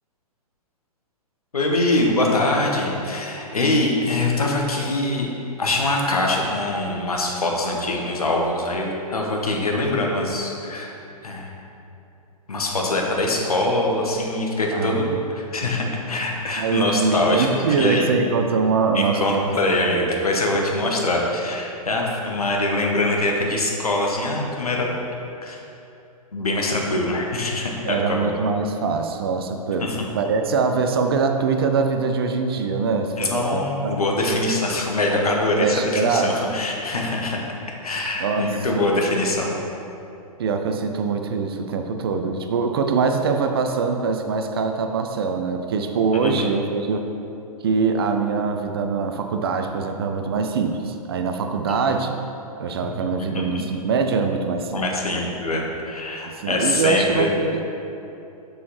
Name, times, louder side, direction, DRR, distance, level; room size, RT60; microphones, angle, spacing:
voice 1, 1.5-5.3 5.6-10.9 11.2-11.5 12.5-18.1 18.9-24.8 25.4-25.6 26.3-28.4 29.8-30.1 33.2-37.4 37.7-39.6 46.1-46.5 51.7-51.8 53.3-53.6 54.7-57.3, left 2 dB, 70° left, 0 dB, 1.1 m, -23 dB
voice 2, 14.7-15.2 15.6-15.7 16.6-19.4 19.7-20.0 27.8-29.9 30.1-34.0 35.6-36.4 38.2-38.9 40.4-47.1 47.6-52.1 52.6-54.8 56.3-57.6, right 5 dB, 40° right, 5 dB, 0.4 m, -23 dB
6.8 x 6.3 x 3.1 m, 2.9 s
figure-of-eight pair, 115°, 20 cm